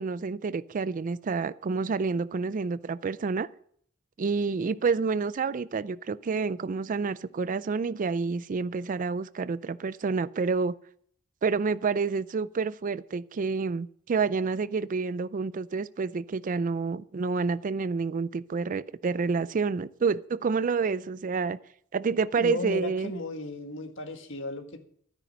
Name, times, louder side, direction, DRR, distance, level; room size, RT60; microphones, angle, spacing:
voice 1, 0.0-3.5 4.2-10.7 11.4-21.6 21.9-23.1, right 4 dB, 40° right, 0.4 m, -28 dB
voice 2, 22.4-24.8, left 2 dB, 65° left, 1.7 m, -35 dB
13.0 x 9.9 x 5.4 m
head